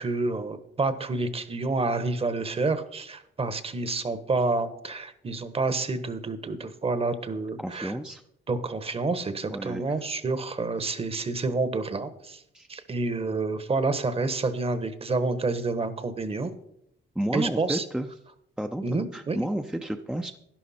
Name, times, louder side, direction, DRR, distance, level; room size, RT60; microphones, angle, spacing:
voice 1, 0.0-7.9 8.5-12.4 12.7-16.5 17.3-17.8 18.8-19.4, right 3 dB, 30° right, 12 dB, 1.1 m, -28 dB
voice 2, 7.6-8.2 9.5-10.0 12.5-12.7 17.1-18.1 18.6-20.4, right 1 dB, 5° right, 5 dB, 0.6 m, -31 dB
11.5 x 11.0 x 4.2 m, 0.75 s
cardioid pair, 90°, 20 cm